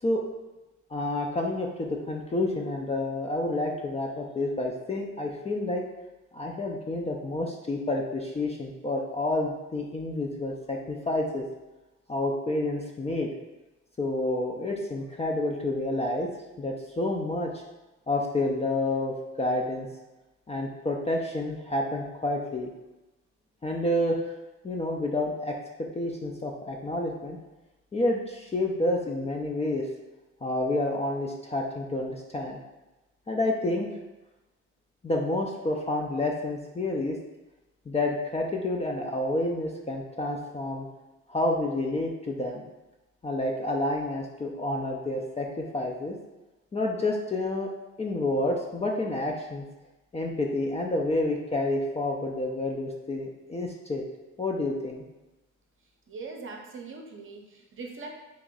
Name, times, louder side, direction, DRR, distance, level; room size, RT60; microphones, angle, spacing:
voice 1, 0.9-5.8 6.3-11.4 12.1-13.3 14.0-16.3 16.6-17.6 18.1-19.9 20.5-22.7 23.6-24.2 24.6-27.4 27.9-29.9 30.4-32.6 33.3-33.9 35.0-37.2 37.9-40.9 41.3-42.6 43.2-46.2 46.7-47.7 48.0-49.6 50.1-54.1 54.4-55.1, left 2 dB, 20° left, 0 dB, 0.4 m, -29 dB
voice 2, 56.1-58.1, right 4 dB, 45° right, 2 dB, 0.7 m, -41 dB
3.0 x 2.6 x 3.8 m, 1.1 s
cardioid pair, 90°, 30 cm